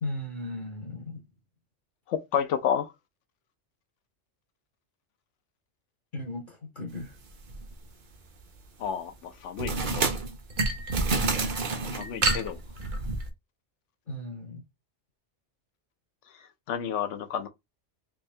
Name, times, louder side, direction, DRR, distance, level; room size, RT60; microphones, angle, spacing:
voice 1, 0.0-1.2 6.1-7.2 14.1-14.6, left 1 dB, 50° left, 0.9 m, -36 dB
voice 2, 2.1-2.9 8.8-10.1 11.9-12.6 16.3-17.5, left 8 dB, 80° left, 1.0 m, -31 dB
sound 1, 7.5-7.7 9.6-13.3, right 3 dB, 50° right, 0.8 m, -28 dB
3.5 x 2.7 x 3.2 m
omnidirectional pair, 1.2 m